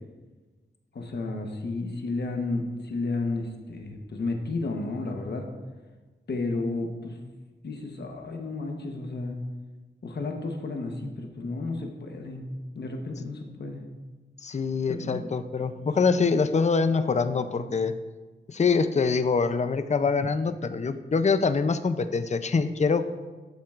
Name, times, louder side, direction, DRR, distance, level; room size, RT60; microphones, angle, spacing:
voice 1, 0.9-5.5 6.3-7.2 7.6-9.4 10.0-12.4 12.7-13.8 14.9-15.3 15.8-15.9, left 3 dB, 60° left, 3 dB, 1.0 m, -32 dB
voice 2, 14.4-17.9 18.5-23.1, left 5 dB, 35° left, 11 dB, 0.5 m, -24 dB
13.0 x 7.5 x 2.4 m, 1.3 s
wide cardioid pair, 125°, 20 cm